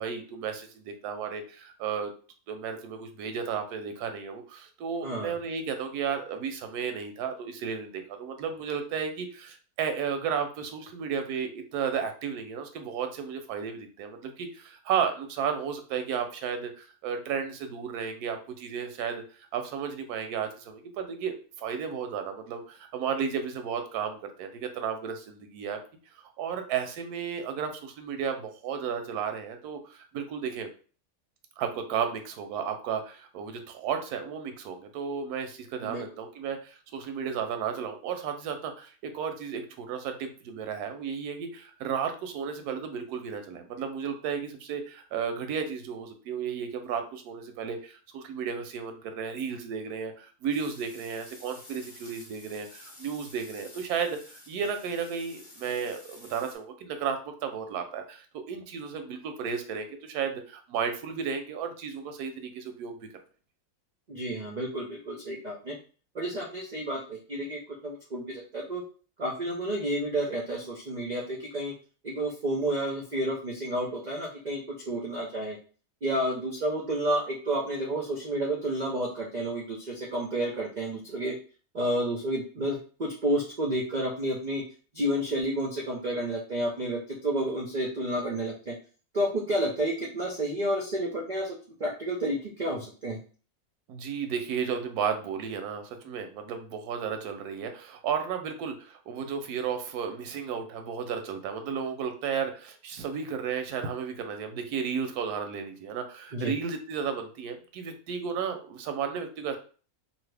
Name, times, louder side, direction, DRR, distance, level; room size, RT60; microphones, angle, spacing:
voice 1, 0.0-2.1 2.5-19.2 19.5-25.8 26.4-30.7 31.6-62.9 93.9-109.6, right 7 dB, 85° right, 7 dB, 1.1 m, -33 dB
voice 2, 5.0-5.3 35.8-36.0 64.1-65.7 66.1-68.8 69.2-71.7 72.0-75.6 76.0-81.3 81.7-84.6 84.9-88.7 89.1-93.2 106.3-106.5, right 1 dB, 65° right, -2 dB, 0.4 m, -30 dB
sound 1, 50.5-56.6, left 1 dB, 30° left, 0.6 m, -50 dB
2.7 x 2.6 x 3.3 m, 0.39 s
omnidirectional pair, 1.6 m